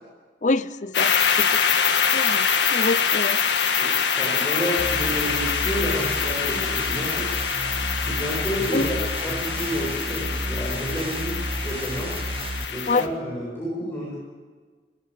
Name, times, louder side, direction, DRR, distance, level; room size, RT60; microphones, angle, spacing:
voice 1, 0.4-1.6 2.1-3.4 8.7-8.9 12.9-13.1, left 3 dB, 45° left, 14 dB, 0.8 m, -26 dB
sound 1, 0.9-13.1, left 7 dB, 80° left, 1.7 m, -24 dB
voice 2, 3.7-7.3 8.0-12.2 12.7-14.1, equal, 15° left, -6 dB, 7.5 m, -30 dB
sound 2, 4.8-12.6, right 1 dB, 30° right, 0.9 m, -32 dB
22.5 x 22.5 x 8.7 m, 1.4 s
head